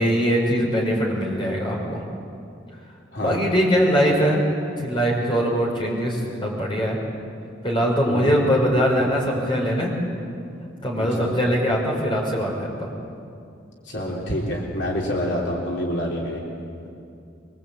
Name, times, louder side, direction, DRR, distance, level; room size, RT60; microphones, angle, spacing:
voice 1, 0.0-2.0 3.2-4.4 4.8-7.0 7.6-9.9 10.8-12.9, equal, 25° left, -2 dB, 5.8 m, -22 dB
voice 2, 11.0-11.3 13.9-16.4, equal, 60° left, -3 dB, 3.6 m, -27 dB
25.0 x 24.0 x 8.8 m, 2.5 s
head